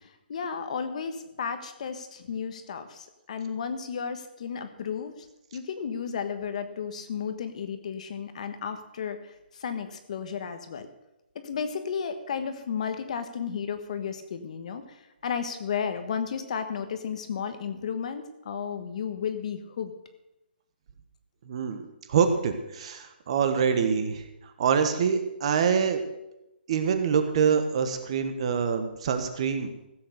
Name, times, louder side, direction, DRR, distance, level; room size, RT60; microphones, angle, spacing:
voice 1, 0.0-5.3 5.5-10.9 11.3-19.9, left 7 dB, 40° left, 9 dB, 1.3 m, -33 dB
voice 2, 21.5-21.8 22.1-24.2 24.6-26.0 26.7-29.7, right 6 dB, 35° right, 8 dB, 1.3 m, -25 dB
15.5 x 7.9 x 6.6 m, 0.90 s
hypercardioid pair, 170°, 6 cm